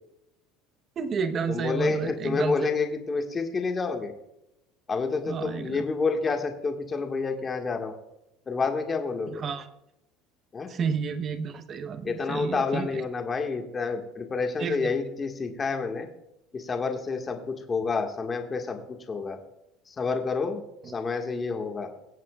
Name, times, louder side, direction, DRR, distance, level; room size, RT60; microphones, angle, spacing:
voice 1, 1.0-2.6 5.2-5.8 9.4-9.7 10.7-13.0 14.6-14.9 20.9-21.0, right 6 dB, 35° right, 9 dB, 1.0 m, -31 dB
voice 2, 1.5-4.1 4.9-7.9 8.5-9.4 10.5-10.7 12.0-16.1 16.5-19.4 19.9-20.6 20.9-21.9, left 4 dB, 25° left, 3 dB, 1.8 m, -29 dB
23.0 x 8.3 x 2.4 m, 0.89 s
supercardioid pair, 115°, 0 cm